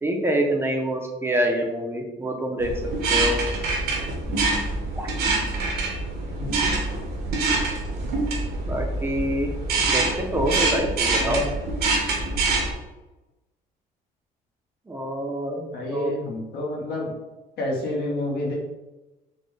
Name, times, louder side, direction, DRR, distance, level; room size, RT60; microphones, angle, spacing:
voice 1, 0.0-2.7 3.1-3.4 5.0-5.1 8.7-9.5 9.9-11.4 14.9-16.1, right 1 dB, 15° right, 2 dB, 0.5 m, -26 dB
sound 1, 2.6-12.7, right 3 dB, 70° right, 0.9 m, -25 dB
voice 2, 11.2-11.5 15.7-17.1 17.6-18.6, left 1 dB, 75° left, -2 dB, 1.1 m, -29 dB
4.1 x 2.1 x 3.2 m, 1.1 s
cardioid pair, 110°, 17 cm